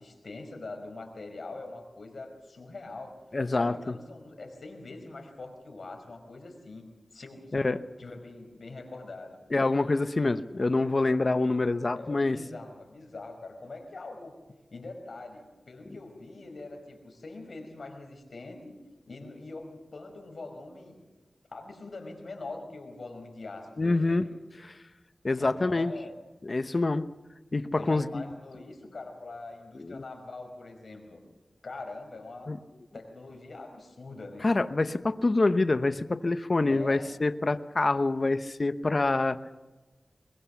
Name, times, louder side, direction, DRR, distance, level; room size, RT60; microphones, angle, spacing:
voice 1, 0.0-3.2 3.5-7.7 8.0-9.4 12.0-14.3 14.7-18.8 19.1-21.0 21.5-24.3 25.4-26.2 27.8-31.2 31.6-32.6 32.9-34.5 36.7-37.1, left 3 dB, 70° left, 4 dB, 5.2 m, -43 dB
voice 2, 3.3-3.8 7.5-7.8 9.5-12.4 23.8-24.3 24.6-24.7 25.2-25.9 26.4-27.1 27.5-28.3 29.8-30.0 32.5-32.6 34.4-39.4, left 2 dB, 50° left, 12 dB, 0.9 m, -26 dB
22.0 x 21.5 x 7.1 m, 1.2 s
cardioid pair, 50°, 0 cm